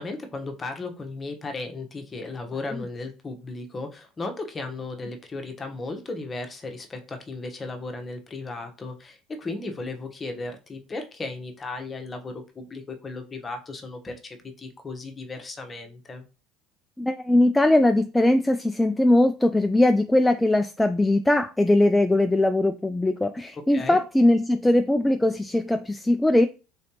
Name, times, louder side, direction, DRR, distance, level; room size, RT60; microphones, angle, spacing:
voice 1, 0.0-16.2 23.7-24.0, left 3 dB, 25° left, 1.0 m, -35 dB
voice 2, 17.0-26.5, left 1 dB, 10° left, 0.3 m, -20 dB
3.8 x 3.3 x 2.9 m
hypercardioid pair, 80°, 0 cm